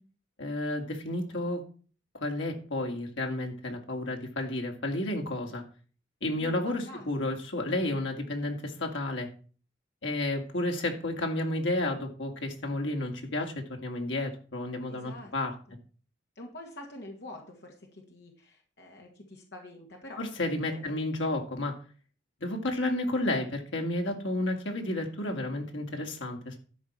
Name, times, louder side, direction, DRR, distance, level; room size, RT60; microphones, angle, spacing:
voice 1, 0.4-1.6 2.2-5.6 6.2-9.3 10.0-15.5 20.2-21.7 22.4-26.6, left 1 dB, 85° left, 2 dB, 2.5 m, -31 dB
voice 2, 6.4-7.3 14.9-15.3 16.4-20.2 20.7-20.9, left 1 dB, 65° left, 1 dB, 2.0 m, -46 dB
12.0 x 4.8 x 7.2 m, 0.40 s
head